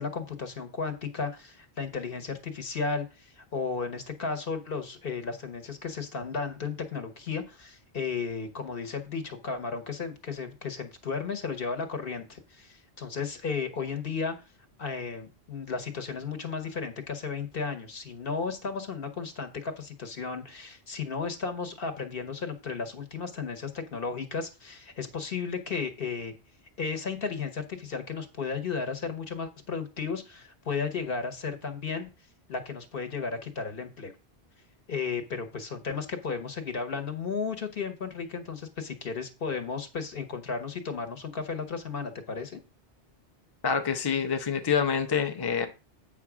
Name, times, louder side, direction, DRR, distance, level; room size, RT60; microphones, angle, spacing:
voice 1, 0.0-14.4 14.8-26.3 26.8-32.1 32.5-34.1 34.9-42.6, left 5 dB, 60° left, 1.2 m, -34 dB
voice 2, 43.6-45.7, left 6 dB, 25° left, 0.6 m, -26 dB
8.2 x 3.7 x 6.0 m
omnidirectional pair, 1.1 m